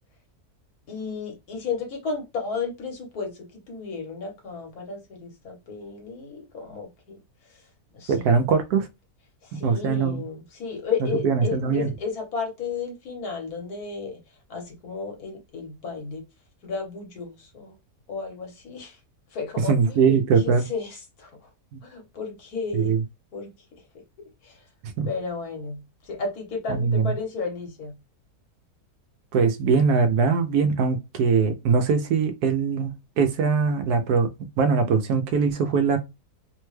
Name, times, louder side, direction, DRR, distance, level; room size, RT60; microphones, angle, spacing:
voice 1, 0.9-7.2 7.5-7.6 7.9-8.2 9.4-14.2 14.5-16.2 16.6-17.7 18.1-19.0 19.3-20.0 20.4-21.3 21.8-22.9 23.3-23.5 24.4-24.6 25.1-28.0, left 5 dB, 70° left, 1.5 m, -33 dB
voice 2, 8.1-8.9 9.5-10.2 11.2-11.9 19.7-20.7 21.7-21.8 22.7-23.0 25.0-25.1 26.7-27.1 29.3-36.0, right 5 dB, 80° right, 1.2 m, -22 dB
3.4 x 2.2 x 3.1 m
omnidirectional pair, 1.6 m